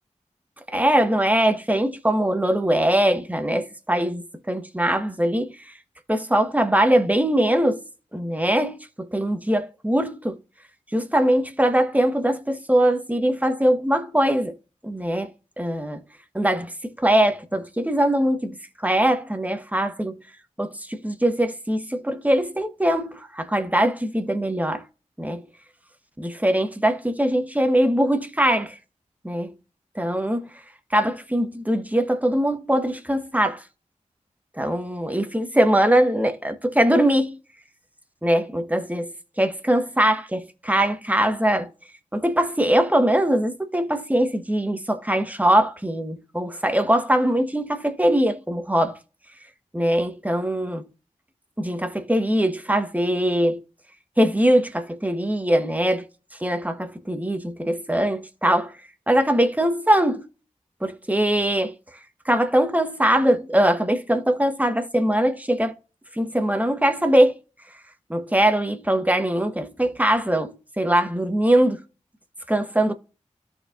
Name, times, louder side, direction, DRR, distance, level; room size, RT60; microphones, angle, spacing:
voice 1, 0.7-5.5 6.1-7.8 8.1-10.4 10.9-14.5 14.8-15.3 15.6-16.0 16.3-18.5 18.8-20.1 20.6-24.8 25.2-25.4 26.2-28.7 29.2-29.5 29.9-30.5 30.9-33.6 34.6-37.4 38.2-39.1 39.4-41.7 42.1-49.0 49.7-50.9 51.6-53.6 54.2-56.0 56.4-58.7 59.1-60.3 60.8-61.7 62.2-65.7 66.1-67.3 68.1-71.8 72.5-72.9, right 1 dB, 10° right, 1.3 m, -21 dB
13.5 x 4.6 x 2.6 m
cardioid pair, 40°, 13 cm